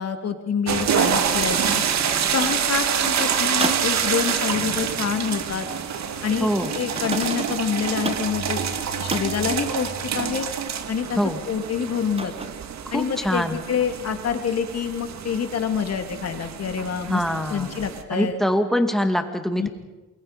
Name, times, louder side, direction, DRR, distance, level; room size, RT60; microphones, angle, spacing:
voice 1, 0.0-1.9 2.3-5.7 6.2-8.6 9.0-10.5 10.9-11.2 11.5-12.3 12.9-17.2 17.5-18.3 19.6-19.7, left 7 dB, 55° left, 6 dB, 2.7 m, -27 dB
sound 1, 0.7-18.0, right 7 dB, 65° right, 1.9 m, -27 dB
sound 2, 1.0-2.7 3.0-3.8 4.2-4.4 6.6-7.6 8.0-8.3 9.1-9.3 9.7-9.9 12.2-12.4, right 3 dB, 20° right, 1.7 m, -32 dB
voice 2, 6.4-6.7 11.2-11.4 12.9-13.6 17.1-17.8 18.1-19.7, equal, ahead, 6 dB, 2.3 m, -24 dB
28.0 x 22.0 x 5.3 m, 1.1 s
cardioid pair, 90°, 30 cm